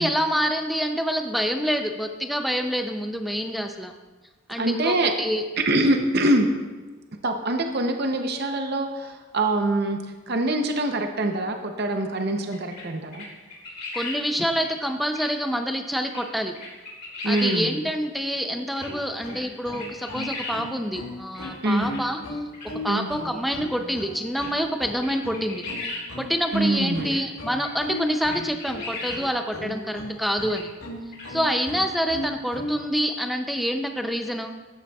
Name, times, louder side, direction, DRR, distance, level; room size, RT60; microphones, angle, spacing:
voice 1, 0.0-3.9 4.5-5.4 13.9-16.6 17.3-22.4 22.8-25.6 26.2-30.7 31.3-34.5, equal, ahead, 5 dB, 0.5 m, -27 dB
voice 2, 4.6-5.1 5.6-6.5 7.2-10.0 10.3-13.2 17.2-17.7 21.6-21.9 22.9-23.1 26.5-27.2, right 1 dB, 50° right, 4 dB, 0.7 m, -24 dB
sound 1, 12.5-12.8 13.1-14.2 14.6-14.7 15.1-15.3 16.1-16.2 16.5-17.6 18.8-18.9 19.3-19.4 19.7-20.6 21.3-22.0 22.5-22.7 23.7-23.8 24.4-24.5 25.0-26.1 26.4-26.6 27.0-27.2 27.6-27.7 27.9-28.0 28.2-29.2 30.5-30.6 31.1-31.3, left 3 dB, 45° left, 2.9 m, -35 dB
sound 2, 18.5-32.8, left 1 dB, 85° left, 1.5 m, -36 dB
13.5 x 8.7 x 2.3 m, 1.3 s
head